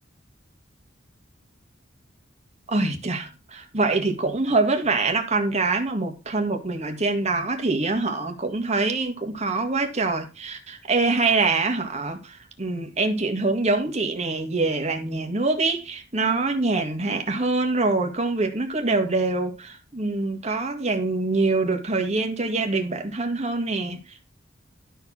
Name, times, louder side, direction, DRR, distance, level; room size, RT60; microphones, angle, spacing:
voice 1, 2.7-24.2, right 3 dB, 35° right, 1.9 m, -25 dB
12.0 x 4.5 x 6.2 m
head